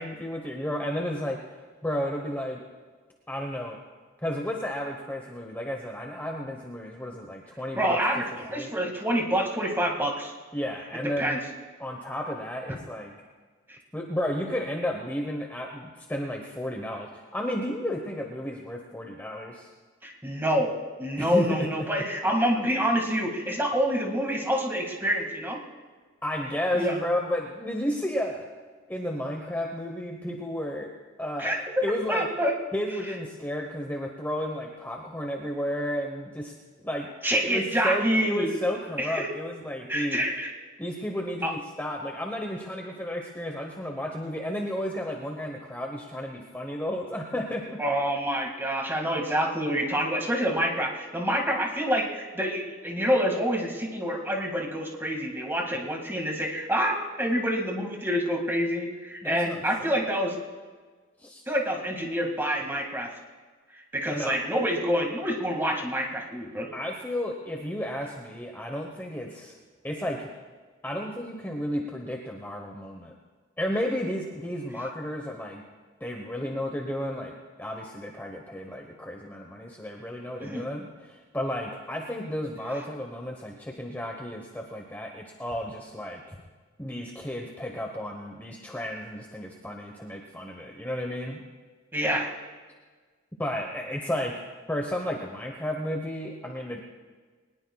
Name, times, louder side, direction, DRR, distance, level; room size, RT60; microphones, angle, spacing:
voice 1, 0.0-1.4 1.8-2.6 3.3-3.8 4.2-8.0 8.5-8.7 10.5-11.4 11.8-13.1 13.9-19.7 21.2-21.9 26.2-28.5 28.9-30.9 31.2-32.3 32.7-36.5 36.8-37.1 37.4-40.2 40.8-47.8 59.2-60.0 61.2-61.4 64.0-64.3 66.7-69.5 69.8-70.3 70.8-73.1 73.6-75.6 76.0-86.2 86.8-91.4 93.4-94.3 94.7-96.8, equal, 10° left, 1 dB, 1.0 m, -32 dB
voice 2, 7.8-10.3 11.2-11.4 13.7-13.8 20.0-20.7 21.0-25.6 26.7-27.0 31.4-31.6 32.1-32.5 37.2-38.5 39.0-39.3 39.9-40.5 41.4-41.6 47.8-60.4 61.5-63.1 63.7-66.7 80.4-80.6 91.9-92.3, equal, 10° right, 1 dB, 2.1 m, -27 dB
22.0 x 20.0 x 2.4 m, 1.5 s
head